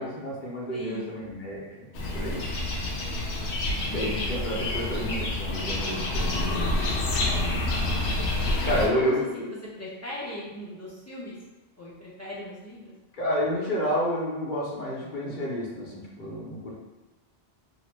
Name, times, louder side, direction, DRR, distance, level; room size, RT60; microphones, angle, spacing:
voice 1, 0.0-2.6 3.1-3.2 3.8-6.9 7.3-7.7 8.6-9.2 13.2-16.7, equal, 55° left, -4 dB, 0.8 m, -30 dB
voice 2, 0.7-1.2 3.0-3.9 7.1-7.8 8.6-9.4 9.8-11.3 11.8-12.9, left 1 dB, 20° left, -8 dB, 0.5 m, -39 dB
sound 1, 1.9-8.9, left 2 dB, 90° left, 0.8 m, -28 dB
2.9 x 2.1 x 3.1 m, 1.1 s
omnidirectional pair, 1.1 m